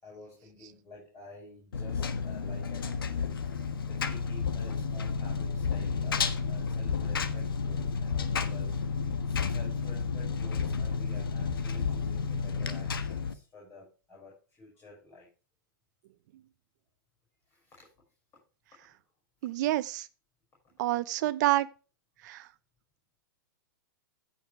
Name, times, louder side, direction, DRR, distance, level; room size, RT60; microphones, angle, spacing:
voice 1, 0.0-3.4 3.9-8.8 9.2-15.3 17.5-17.9, left 2 dB, 20° left, 5.9 m, -51 dB
Engine, 1.7-13.3, left 5 dB, 90° left, 1.4 m, -31 dB
voice 2, 19.4-20.1 20.8-21.7 22.2-22.5, right 16 dB, 55° right, 0.9 m, -28 dB
15.0 x 5.9 x 3.3 m
hypercardioid pair, 130°, 12 cm